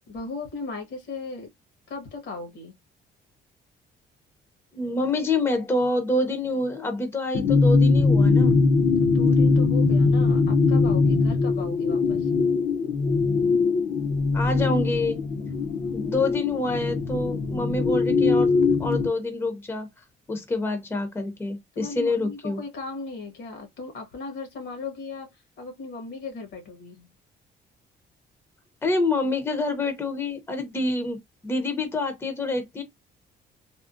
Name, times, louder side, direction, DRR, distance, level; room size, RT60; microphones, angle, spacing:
voice 1, 0.1-1.5 1.9-2.7 9.0-12.3 21.7-27.1, left 3 dB, 75° left, 1.4 m, -37 dB
voice 2, 4.7-8.5 14.3-15.2 15.9-18.5 18.8-19.9 20.3-22.6 28.8-32.8, left 2 dB, 15° left, 0.6 m, -27 dB
sound 1, 7.3-19.1, left 4 dB, 55° left, 0.6 m, -21 dB
3.6 x 2.0 x 2.5 m
cardioid pair, 145°, 18 cm